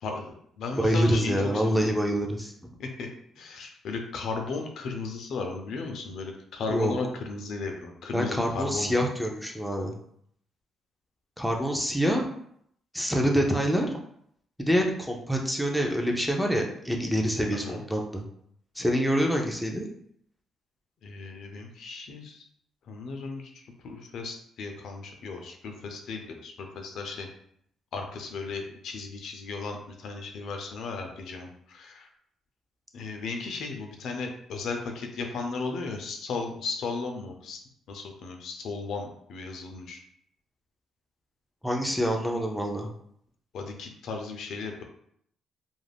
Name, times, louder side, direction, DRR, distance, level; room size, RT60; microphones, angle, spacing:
voice 1, 0.0-1.9 2.8-3.1 3.4-9.0 17.6-17.8 21.0-22.4 22.9-27.3 27.9-32.1 32.9-37.6 37.9-40.0 43.5-44.8, left 4 dB, 70° left, 3 dB, 0.4 m, -35 dB
voice 2, 0.7-2.5 6.7-7.0 8.1-9.9 11.4-12.3 12.9-14.0 14.6-18.3 18.8-19.9 41.6-42.9, equal, ahead, 1 dB, 0.5 m, -26 dB
2.4 x 2.0 x 3.3 m, 0.69 s
cardioid pair, 90°, 0 cm